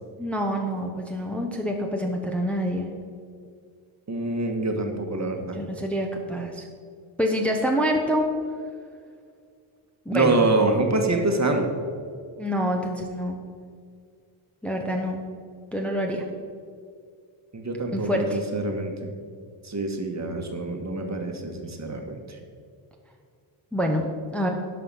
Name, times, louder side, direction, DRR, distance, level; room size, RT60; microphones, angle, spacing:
voice 1, 0.2-2.9 5.5-6.7 7.2-8.3 10.0-10.4 12.4-13.4 14.6-15.2 15.7-16.3 17.9-18.4 23.7-24.5, equal, 5° left, 1 dB, 1.0 m, -26 dB
voice 2, 4.1-5.6 10.1-11.7 17.5-19.1 19.6-22.4, right 2 dB, 35° right, 4 dB, 1.4 m, -25 dB
11.5 x 5.8 x 5.5 m, 2.2 s
cardioid pair, 90°, 50 cm